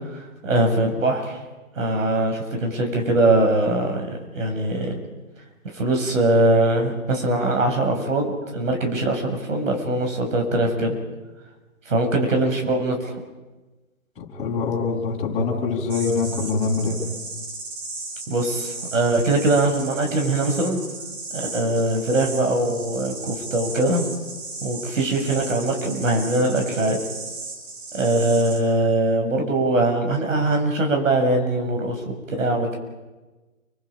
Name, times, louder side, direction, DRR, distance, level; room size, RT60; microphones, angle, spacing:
voice 1, 0.4-1.4 1.8-5.0 5.7-11.0 11.9-13.2 18.3-20.8 21.3-24.1 24.6-27.0 27.9-32.8, right 2 dB, 65° right, 2 dB, 7.3 m, -22 dB
voice 2, 14.2-17.0, left 4 dB, 15° left, -4 dB, 7.4 m, -24 dB
sound 1, 15.9-28.6, right 3 dB, 50° right, 7.7 m, -35 dB
29.5 x 25.5 x 5.3 m, 1.2 s
hypercardioid pair, 150°, 42 cm